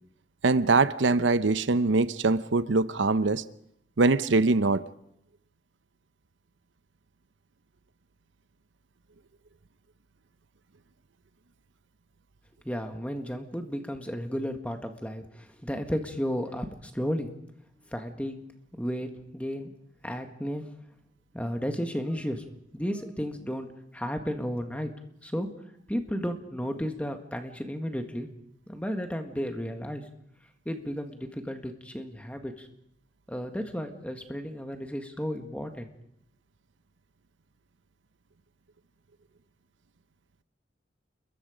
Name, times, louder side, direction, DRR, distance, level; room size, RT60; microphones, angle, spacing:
voice 1, 0.4-3.4 4.0-4.8, right 3 dB, 85° right, 0.8 m, -23 dB
voice 2, 12.6-17.3 17.9-18.4 18.8-19.7 20.0-20.6 21.3-22.5 22.7-24.9 25.2-25.5 25.9-28.3 28.7-30.0 30.7-32.7 33.3-35.9, equal, 5° left, 1.8 m, -33 dB
28.0 x 22.0 x 5.1 m
head